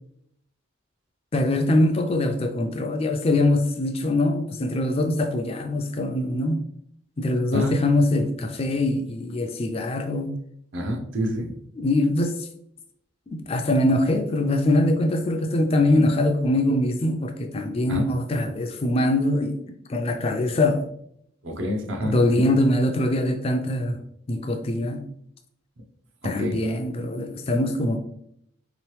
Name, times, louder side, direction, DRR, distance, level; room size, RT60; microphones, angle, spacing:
voice 1, 1.3-6.6 7.2-10.4 11.8-12.3 13.3-19.6 19.9-20.8 22.0-24.0 24.3-25.1 26.2-28.0, left 1 dB, 30° left, 5 dB, 0.3 m, -23 dB
voice 2, 10.7-11.5 17.9-18.0 21.4-22.1 26.2-26.6, equal, 65° right, 3 dB, 0.7 m, -27 dB
3.6 x 3.0 x 3.1 m, 0.73 s
head